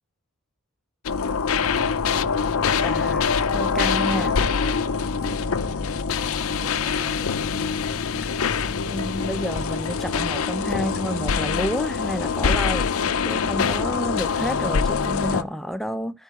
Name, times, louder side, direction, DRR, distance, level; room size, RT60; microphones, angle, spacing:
sound 1, 1.1-15.4, left 6 dB, 75° left, 0.5 m, -24 dB
sound 2, 1.5-15.5, left 1 dB, 35° right, 5.9 m, -39 dB
voice 1, 1.9-2.8 4.1-5.3 6.5-7.7, right 2 dB, 65° right, 3.0 m, -44 dB
voice 2, 2.8-4.3 8.9-12.9 13.2-16.2, equal, ahead, 0.4 m, -30 dB
12.5 x 4.6 x 3.0 m
head